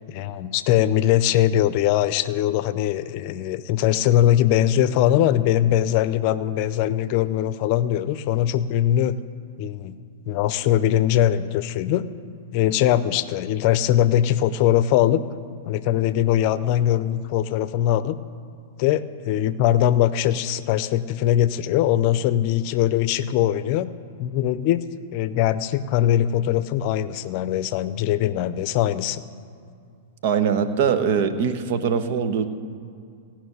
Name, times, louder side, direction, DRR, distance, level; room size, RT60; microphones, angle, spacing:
voice 1, 0.1-9.2 9.6-10.0 10.3-12.1 12.5-15.2 15.7-18.2 18.8-23.9 24.2-24.8 25.1-29.2, left 11 dB, 50° left, 14 dB, 0.6 m, -21 dB
voice 2, 30.2-32.5, right 7 dB, 55° right, 9 dB, 1.1 m, -22 dB
17.0 x 5.9 x 9.5 m, 2.4 s
hypercardioid pair, 110°, 0 cm